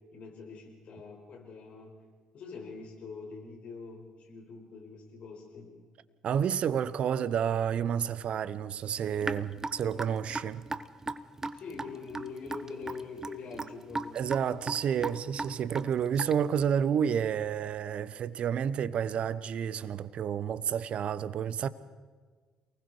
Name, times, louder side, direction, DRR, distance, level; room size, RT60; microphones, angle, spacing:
voice 1, 0.1-1.9 2.3-5.7 11.5-14.2, left 4 dB, 55° left, 5.5 m, -44 dB
voice 2, 6.2-10.6 14.1-21.7, right 8 dB, 55° right, 1.0 m, -30 dB
Raindrop / Drip, 9.2-16.6, right 2 dB, 20° right, 1.1 m, -37 dB
29.0 x 20.0 x 4.7 m
hypercardioid pair, 50°, 2 cm